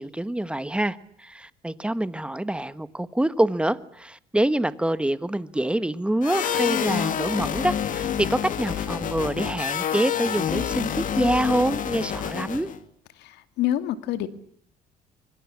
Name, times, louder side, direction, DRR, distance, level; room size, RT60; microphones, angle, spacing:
voice 1, 0.0-12.7, right 1 dB, 5° right, 15 dB, 1.3 m, -26 dB
sound 1, 6.2-12.8, left 9 dB, 50° left, 2.6 m, -28 dB
voice 2, 13.2-14.3, left 12 dB, 85° left, 11 dB, 2.4 m, -27 dB
26.0 x 24.5 x 8.5 m, 0.64 s
cardioid pair, 110°, 17 cm